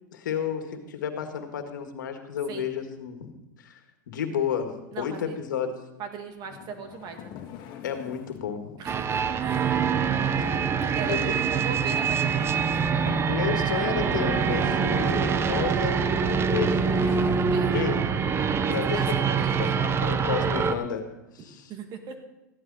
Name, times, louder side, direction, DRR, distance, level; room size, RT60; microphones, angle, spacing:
voice 1, 0.1-3.3 3.6-3.8 4.1-5.7 7.8-8.8 10.3-10.5 11.1-11.4 13.3-17.2 17.7-18.0 18.7-19.2 19.6-21.7, left 8 dB, 80° left, 6 dB, 1.8 m, -31 dB
voice 2, 4.9-5.4 6.0-7.3 8.8-9.9 10.9-12.8 17.4-17.7 18.8-19.6 21.7-22.2, right 5 dB, 45° right, 5 dB, 2.2 m, -38 dB
sound 1, 6.4-8.5 10.3-11.2 11.9-12.0 12.4-12.5 13.1-13.4 13.8-15.3 16.4-17.6, left 9 dB, 45° left, 1.9 m, -41 dB
sound 2, 8.9-20.7, right 6 dB, 25° right, 0.8 m, -25 dB
14.5 x 11.5 x 4.1 m, 0.96 s
hypercardioid pair, 110°, 10 cm